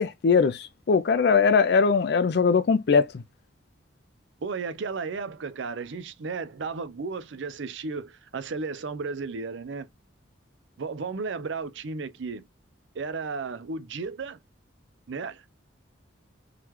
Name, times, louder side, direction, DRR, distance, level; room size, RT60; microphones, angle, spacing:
voice 1, 0.0-3.2, left 5 dB, 55° left, 0.4 m, -21 dB
voice 2, 4.4-9.9 10.8-12.4 12.9-14.4 15.1-15.4, right 4 dB, 70° right, 0.5 m, -34 dB
3.7 x 3.1 x 3.0 m
head